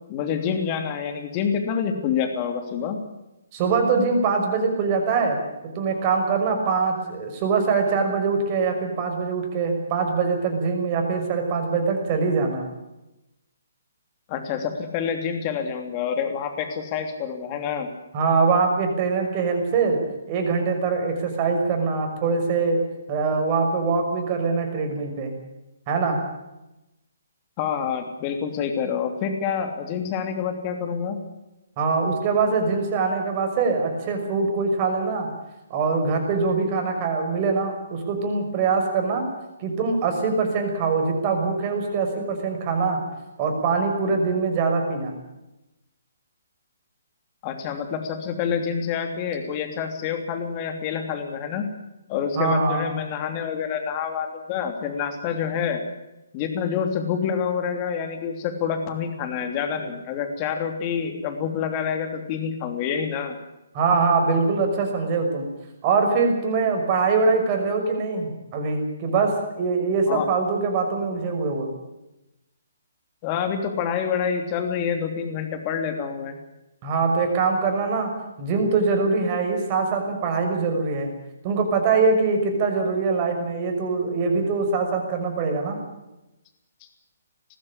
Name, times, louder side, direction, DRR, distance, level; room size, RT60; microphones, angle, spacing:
voice 1, 0.1-3.0 14.3-17.9 27.6-31.2 47.4-51.7 52.1-55.8 56.3-63.4 70.1-70.3 73.2-76.4, left 7 dB, 30° left, 6 dB, 3.1 m, -27 dB
voice 2, 3.5-5.4 5.8-12.7 18.1-20.0 20.3-22.8 23.1-25.3 25.9-26.2 31.8-35.3 35.7-39.3 39.6-43.0 43.4-45.1 52.4-52.9 63.7-65.5 65.8-71.7 76.8-78.1 78.4-81.1 81.4-85.7, right 4 dB, 30° right, 3 dB, 6.0 m, -23 dB
20.0 x 15.0 x 10.0 m, 0.96 s
figure-of-eight pair, 140°, 0 cm